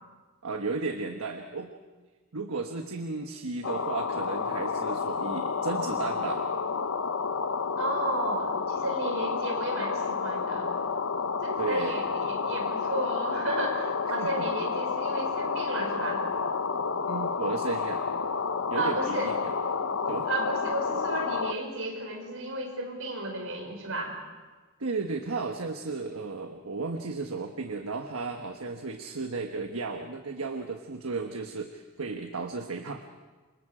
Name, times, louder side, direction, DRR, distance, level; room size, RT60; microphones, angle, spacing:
voice 1, 0.4-1.7 2.3-6.5 11.6-12.0 14.2-14.5 17.1-18.0 18.7-19.5 20.1-20.3 24.8-33.0, right 4 dB, 85° right, 4 dB, 1.3 m, -34 dB
sound 1, 3.6-21.5, left 5 dB, 70° left, 0.8 m, -30 dB
voice 2, 7.8-10.8 11.4-16.3 18.7-19.3 20.3-24.1, right 2 dB, 65° right, 1 dB, 5.6 m, -33 dB
28.5 x 25.0 x 5.0 m, 1.3 s
head